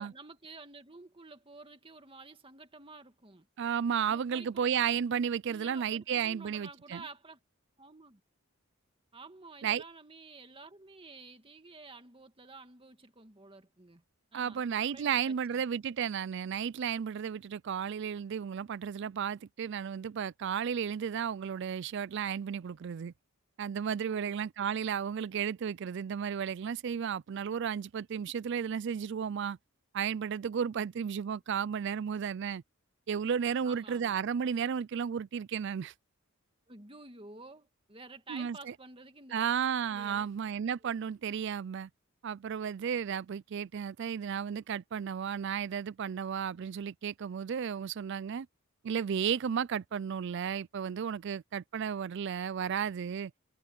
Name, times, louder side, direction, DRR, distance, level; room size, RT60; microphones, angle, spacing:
voice 1, 0.0-3.5 4.1-4.7 5.5-7.4 7.8-8.2 9.1-14.0 14.3-15.6 24.0-24.4 33.6-34.2 36.7-39.5 39.9-40.3 40.8-40.9, right 3 dB, 25° right, 2.0 m, -51 dB
voice 2, 3.6-7.0 9.6-9.8 14.3-23.1 23.6-29.6 29.9-32.6 33.1-35.9 38.3-38.7 39.3-41.9 42.2-48.5 48.8-53.3, right 7 dB, 60° right, 0.4 m, -33 dB
head